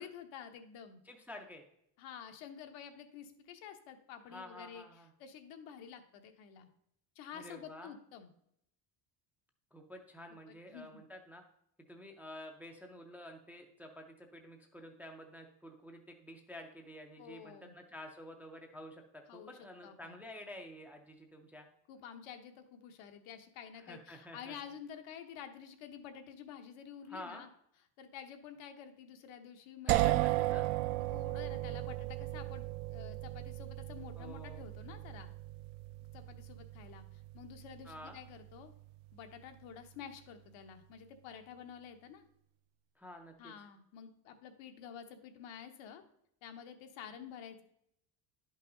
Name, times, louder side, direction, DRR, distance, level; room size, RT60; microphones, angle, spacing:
voice 1, 0.0-1.0 2.0-4.8 5.2-6.7 7.1-8.3 10.3-11.0 17.2-17.7 19.3-20.2 21.9-27.5 28.0-29.9 31.1-35.3 36.1-38.7 39.1-42.3 43.4-46.0 46.4-47.6, left 8 dB, 80° left, 6 dB, 1.2 m, -50 dB
voice 2, 1.0-1.6 4.3-5.1 7.3-7.9 9.7-11.4 11.9-21.7 23.8-24.6 27.1-27.4 29.9-30.7 34.2-34.6 37.8-38.2 43.0-43.5, left 1 dB, 5° right, 3 dB, 0.3 m, -50 dB
sound 1, 29.9-39.7, right 17 dB, 85° right, 0.5 m, -36 dB
10.5 x 5.5 x 3.8 m, 0.74 s
cardioid pair, 180°, 46 cm